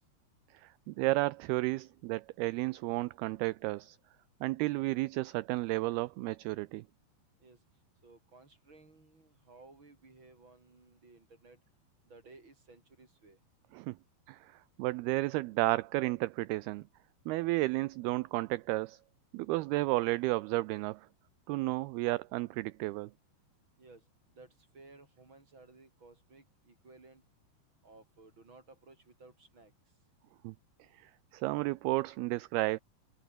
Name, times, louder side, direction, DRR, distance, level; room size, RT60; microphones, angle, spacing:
voice 1, 0.5-4.0 4.4-6.8 13.7-14.0 14.3-16.8 17.3-19.0 19.3-21.1 21.5-23.1 30.4-30.5 31.0-32.8, right 20 dB, 80° right, 2.3 m, -32 dB
voice 2, 8.0-11.6 12.1-13.4 23.8-24.0 24.3-27.2 27.8-29.7, right 3 dB, 30° right, 4.4 m, -57 dB
omnidirectional pair, 5.0 m